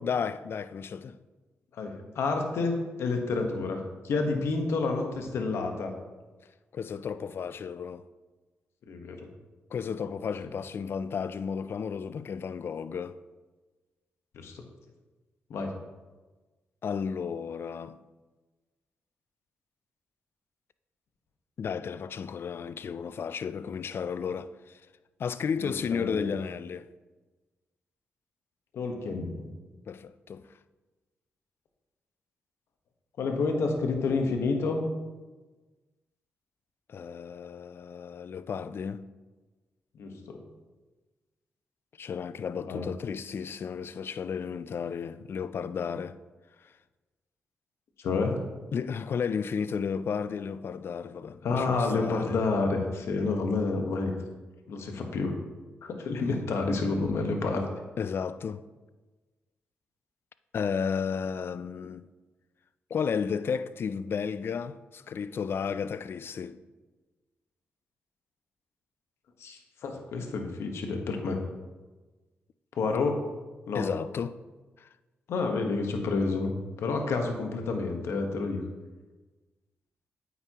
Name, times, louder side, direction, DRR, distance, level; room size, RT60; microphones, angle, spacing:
voice 1, 0.0-1.2 6.7-8.1 9.7-13.2 16.8-18.0 21.6-24.8 25.2-26.9 29.9-30.4 36.9-39.0 42.0-46.2 48.7-52.3 58.0-58.6 60.5-62.1 62.9-66.6 73.7-74.4 74.8-74.9, left 6 dB, 60° left, 0.4 m, -33 dB
voice 2, 1.7-5.9 8.9-9.3 14.3-14.6 15.5-15.8 25.9-26.4 28.7-29.5 33.2-35.0 40.0-40.4 42.6-43.0 48.0-48.4 51.4-54.1 54.7-55.4 55.8-57.7 69.4-71.4 72.7-73.2 73.7-73.9 75.3-76.5 76.8-78.6, left 3 dB, 75° left, 1.2 m, -29 dB
9.1 x 8.3 x 3.0 m
supercardioid pair, 55°, 4 cm